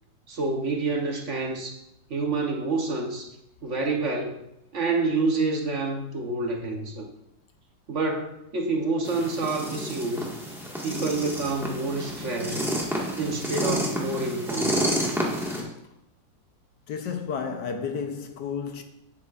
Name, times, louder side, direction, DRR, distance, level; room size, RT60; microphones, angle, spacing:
voice 1, 0.3-1.8 2.1-3.3 3.6-4.4 4.7-7.1 7.9-10.3 10.8-12.6 13.2-14.8, right 3 dB, 45° right, 1.1 m, -28 dB
sound 1, 9.0-15.6, equal, ahead, 1.5 m, -30 dB
voice 2, 16.9-18.8, left 6 dB, 70° left, 1.3 m, -31 dB
9.9 x 8.7 x 2.5 m
omnidirectional pair, 2.0 m